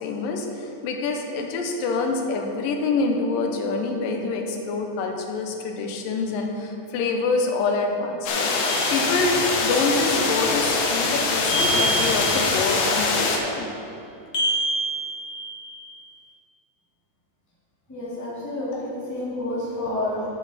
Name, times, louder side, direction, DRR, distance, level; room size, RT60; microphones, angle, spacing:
voice 1, 0.0-8.5 8.9-13.7, left 3 dB, 90° left, 3 dB, 2.6 m, -26 dB
sound 1, 8.3-13.4, left 3 dB, 65° left, 1.7 m, -23 dB
sound 2, 8.6-9.6 11.5-12.7 14.3-15.8, right 2 dB, 35° left, 2.2 m, -28 dB
voice 2, 17.9-20.3, left 1 dB, 5° left, -7 dB, 1.5 m, -29 dB
12.0 x 7.4 x 4.2 m, 2.8 s
omnidirectional pair, 3.8 m